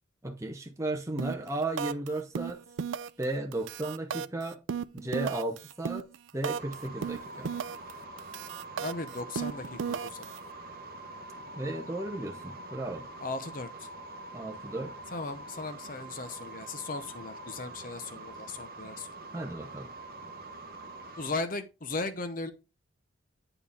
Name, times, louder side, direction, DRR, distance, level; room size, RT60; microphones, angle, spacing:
voice 1, 0.2-2.6 3.2-4.6 4.9-6.1 6.3-7.5 11.5-13.1 14.3-14.9 19.3-19.9, right 2 dB, 15° right, 0.7 m, -34 dB
sound 1, 1.2-1.5 1.8-2.1 2.4-3.2 3.5-6.7 7.0-7.9 8.2-10.4, right 6 dB, 65° right, 0.4 m, -34 dB
sound 2, 6.6-21.3, right 2 dB, 45° right, 0.9 m, -45 dB
voice 2, 8.8-10.3 13.2-13.9 15.1-19.1 21.2-22.5, left 3 dB, 40° left, 0.7 m, -37 dB
8.8 x 4.4 x 3.5 m
head